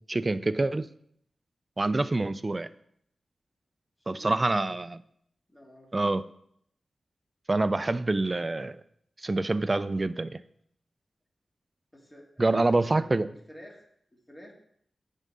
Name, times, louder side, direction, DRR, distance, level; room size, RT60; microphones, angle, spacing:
voice 1, 0.1-0.9 1.8-2.7 4.1-5.0 5.9-6.2 7.5-8.8 9.2-10.4 12.4-13.3, right 2 dB, 35° right, 14 dB, 0.4 m, -26 dB
voice 2, 5.5-6.1 11.9-13.8 14.3-14.5, equal, 20° left, -1 dB, 2.1 m, -49 dB
9.2 x 3.7 x 5.5 m, 0.70 s
cardioid pair, 60°, 0 cm